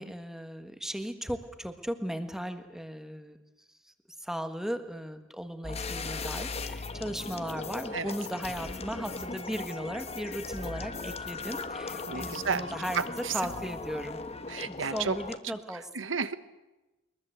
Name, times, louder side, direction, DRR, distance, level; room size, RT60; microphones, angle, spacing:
voice 1, 0.0-3.4 4.2-14.2 14.7-15.9, equal, ahead, 8 dB, 1.6 m, -37 dB
sound 1, 5.6-15.4, left 3 dB, 30° left, 1.2 m, -38 dB
voice 2, 12.1-12.7 12.9-13.4 14.5-15.2 15.9-16.4, right 5 dB, 75° right, 13 dB, 1.2 m, -31 dB
22.5 x 21.5 x 8.0 m, 1.1 s
head